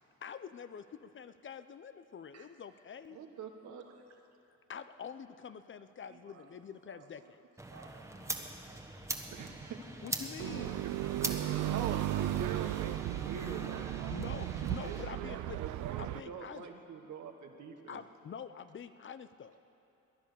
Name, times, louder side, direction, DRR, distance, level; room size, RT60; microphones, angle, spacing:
voice 1, 0.2-3.2 4.7-7.4 10.0-10.8 14.1-15.6 16.0-16.7 17.9-19.6, left 7 dB, 40° left, 12 dB, 0.6 m, -46 dB
voice 2, 3.1-3.9 9.3-10.1 10.8-11.0 11.3-11.4 11.6-13.9 14.8-18.0, right 6 dB, 75° right, 4 dB, 1.5 m, -44 dB
voice 3, 6.1-6.5 6.8-7.3 7.7-8.8 9.2-9.3 11.2-11.8 17.9-18.0, right 5 dB, 55° right, 2 dB, 2.1 m, -59 dB
sound 1, 7.6-15.0, right 1 dB, 10° right, 1.4 m, -42 dB
sound 2, 10.4-16.2, right 14 dB, 90° right, 0.5 m, -35 dB
19.0 x 10.5 x 6.8 m, 2.7 s
cardioid pair, 90°, 30 cm